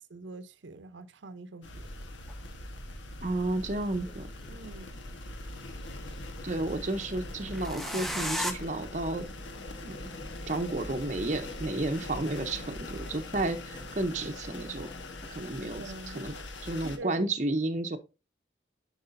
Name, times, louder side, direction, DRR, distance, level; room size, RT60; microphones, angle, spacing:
voice 1, 0.1-1.8 4.5-5.0 15.6-17.3, right 3 dB, 80° right, 0.6 m, -45 dB
sound 1, 1.6-17.0, left 2 dB, 90° left, 1.2 m, -42 dB
sound 2, 2.3-2.4 3.6-4.7 7.5-8.5, equal, ahead, 0.6 m, -34 dB
voice 2, 3.2-4.3 6.4-9.3 9.8-10.1 10.5-14.9 15.3-15.8 16.1-16.3 16.6-18.0, right 2 dB, 40° right, 0.7 m, -32 dB
sound 3, 5.3-5.4 5.8-15.3, left 1 dB, 20° left, 1.0 m, -54 dB
10.5 x 4.8 x 2.6 m
head